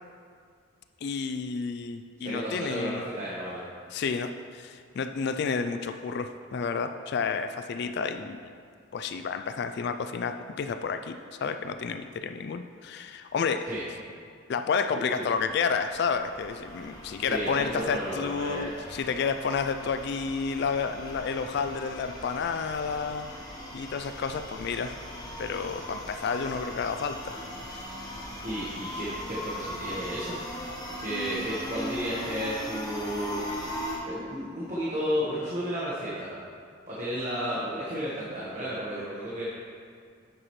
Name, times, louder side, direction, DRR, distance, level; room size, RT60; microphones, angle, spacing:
voice 1, 1.0-3.1 3.9-8.4 8.9-13.7 14.5-23.3 23.7-25.0 25.4-27.4 27.7-27.9, left 5 dB, 50° left, 9 dB, 0.3 m, -30 dB
voice 2, 2.2-3.6 13.6-13.8 14.9-15.3 17.2-18.7 28.4-30.3 31.0-36.3 36.9-39.4, equal, 35° right, -7 dB, 1.3 m, -33 dB
sound 1, 15.2-34.0, equal, 20° left, 1.1 m, -39 dB
9.8 x 7.7 x 3.2 m, 2.2 s
head